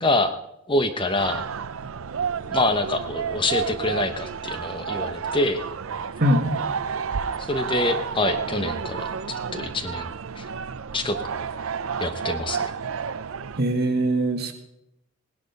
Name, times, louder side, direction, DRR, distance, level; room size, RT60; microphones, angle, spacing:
voice 1, 0.0-0.3 0.7-1.4 2.5-5.6 7.5-10.1 10.4-10.5 10.9-11.2 12.0-12.7, left 2 dB, 25° left, 8 dB, 1.0 m, -25 dB
sound 1, 1.2-13.6, right 6 dB, 70° right, 0.5 m, -30 dB
voice 2, 6.2-6.6 13.6-14.5, right 1 dB, 50° right, 4 dB, 2.0 m, -22 dB
18.5 x 10.5 x 5.4 m, 0.82 s
head